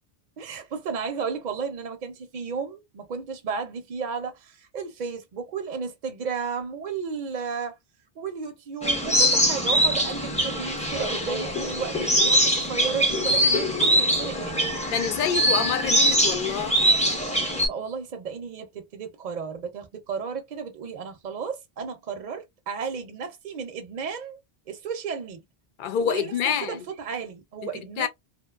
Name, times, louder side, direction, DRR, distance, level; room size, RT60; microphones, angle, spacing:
voice 1, 0.4-7.8 8.2-14.7 17.6-24.4 24.7-25.4 26.0-26.4 26.6-28.1, right 5 dB, 55° right, 0.6 m, -33 dB
sound 1, 8.8-17.7, equal, 10° left, 0.5 m, -23 dB
voice 2, 14.9-16.8 25.8-26.8 28.0-28.1, left 8 dB, 60° left, 0.6 m, -26 dB
2.5 x 2.1 x 2.3 m
omnidirectional pair, 1.1 m